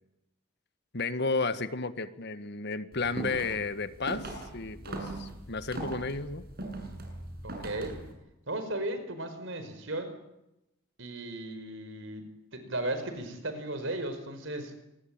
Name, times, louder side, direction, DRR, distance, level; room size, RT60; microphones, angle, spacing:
voice 1, 0.9-6.4, left 3 dB, 55° left, 12 dB, 1.5 m, -33 dB
sound 1, 2.9-8.1, right 1 dB, 50° right, 7.0 m, -40 dB
voice 2, 7.4-8.0 8.5-10.2 11.0-14.7, right 1 dB, 65° right, 9 dB, 4.9 m, -36 dB
26.5 x 21.0 x 8.9 m, 0.89 s
head